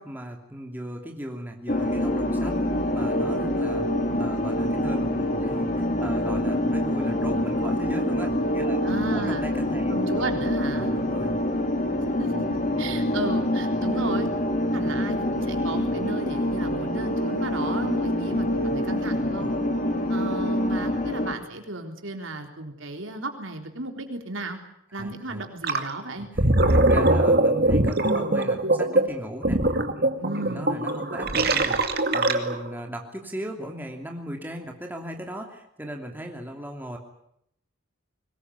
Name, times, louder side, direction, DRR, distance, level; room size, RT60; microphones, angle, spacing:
voice 1, 0.0-2.6 2.9-3.9 4.2-8.8 9.1-10.3 10.6-11.4 19.4-19.8 25.0-25.4 26.3-30.1 30.4-37.0, right 1 dB, 10° right, 2 dB, 2.9 m, -37 dB
sound 1, 1.7-21.4, left 1 dB, 40° left, 2.6 m, -26 dB
voice 2, 8.8-9.5 9.9-10.9 12.2-12.4 12.8-14.3 14.7-19.5 20.1-24.6 24.9-26.3 30.2-30.8, right 2 dB, 70° right, 4 dB, 3.9 m, -34 dB
Gurgling, 25.6-25.9 26.2-32.7, right 2 dB, 50° right, 2.3 m, -22 dB
23.0 x 20.5 x 9.6 m, 0.74 s
head